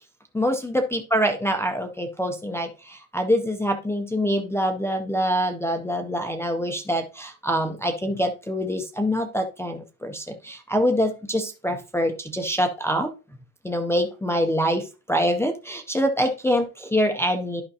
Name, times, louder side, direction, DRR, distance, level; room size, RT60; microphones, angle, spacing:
voice 1, 0.3-13.1 13.6-17.6, equal, 5° left, 3 dB, 0.4 m, -25 dB
11.5 x 5.0 x 2.7 m, 0.31 s
cardioid pair, 140°, 45 cm